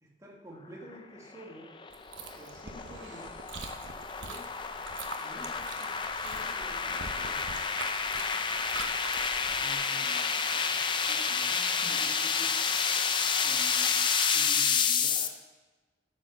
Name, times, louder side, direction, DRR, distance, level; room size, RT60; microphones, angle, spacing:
voice 1, 0.0-1.7 2.4-3.5 4.2-4.5 5.2-7.6, equal, 15° right, -3 dB, 1.8 m, -50 dB
sound 1, 1.3-15.3, left 6 dB, 25° left, 0.4 m, -30 dB
Chewing mastication, 1.9-9.7, right 4 dB, 85° right, 0.9 m, -44 dB
voice 2, 9.6-10.7 11.1-12.6 13.4-15.3, left 1 dB, 10° left, -8 dB, 1.6 m, -49 dB
9.0 x 6.6 x 5.7 m, 1.2 s
head